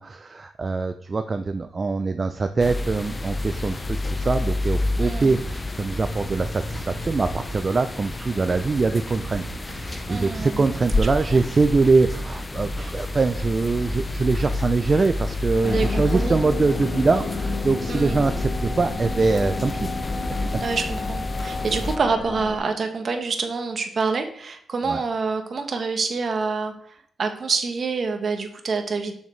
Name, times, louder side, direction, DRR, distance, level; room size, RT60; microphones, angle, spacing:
voice 1, 0.0-19.9 20.3-20.4 24.9-25.0, right 3 dB, 35° right, 8 dB, 0.4 m, -23 dB
sound 1, 2.6-22.0, left 2 dB, 25° left, 0.5 m, -29 dB
sound 2, 4.9-7.6 8.5-11.1 11.5-12.2 12.7-15.8 16.1-17.2 18.1-20.5, right 4 dB, 75° right, 0.9 m, -39 dB
voice 2, 5.0-5.4 10.1-10.6 15.7-15.8 16.1-16.4 17.9-18.2 20.6-29.1, right 4 dB, 50° right, 6 dB, 1.1 m, -27 dB
sound 3, 15.6-22.6, left 4 dB, 50° left, 0.8 m, -31 dB
6.7 x 6.4 x 3.2 m, 0.65 s
cardioid pair, 90°, 0 cm